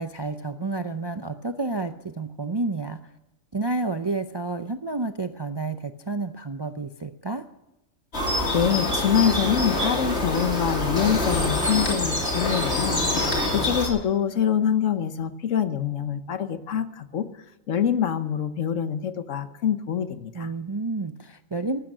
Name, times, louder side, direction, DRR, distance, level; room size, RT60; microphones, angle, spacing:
voice 1, 0.0-3.0 3.5-7.4 20.3-21.8, right 3 dB, 35° right, 8 dB, 0.4 m, -30 dB
sound 1, 8.1-13.9, left 2 dB, 55° left, 3.4 m, -25 dB
voice 2, 8.2-17.3 17.7-20.5, left 8 dB, 70° left, 11 dB, 1.3 m, -25 dB
14.5 x 12.5 x 6.3 m, 0.97 s
omnidirectional pair, 1.4 m